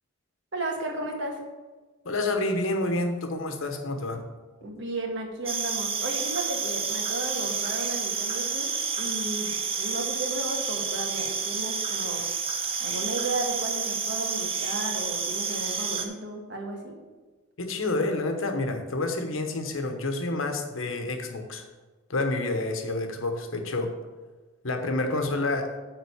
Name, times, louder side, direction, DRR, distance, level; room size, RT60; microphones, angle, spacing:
voice 1, 0.5-1.4 4.6-12.3 12.8-17.0, right 2 dB, 60° right, 1 dB, 1.5 m, -34 dB
voice 2, 2.0-4.2 17.6-21.6 22.1-23.9 24.6-25.7, left 2 dB, 75° left, 5 dB, 1.0 m, -28 dB
sound 1, 5.5-16.1, right 5 dB, 25° right, 0.7 m, -30 dB
9.0 x 3.8 x 7.1 m, 1.3 s
head